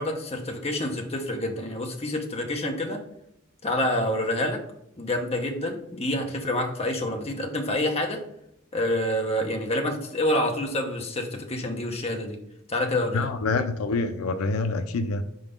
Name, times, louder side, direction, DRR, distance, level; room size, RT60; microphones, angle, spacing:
voice 1, 0.0-3.0 3.6-4.6 5.0-8.2 8.7-12.4 12.7-13.3, left 1 dB, 30° left, 3 dB, 0.9 m, -27 dB
voice 2, 13.1-15.2, left 3 dB, 80° left, 9 dB, 0.5 m, -26 dB
4.8 x 3.9 x 5.1 m, 0.78 s
head